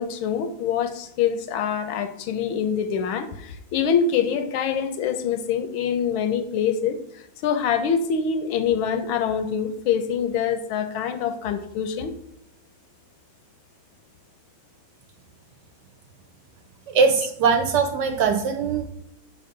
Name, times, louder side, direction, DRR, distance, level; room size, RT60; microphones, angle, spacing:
voice 1, 0.0-7.0 7.4-12.1, left 7 dB, 80° left, 1.4 m, -25 dB
voice 2, 16.9-18.8, right 5 dB, 70° right, 1.2 m, -21 dB
5.5 x 3.8 x 5.2 m
omnidirectional pair, 2.3 m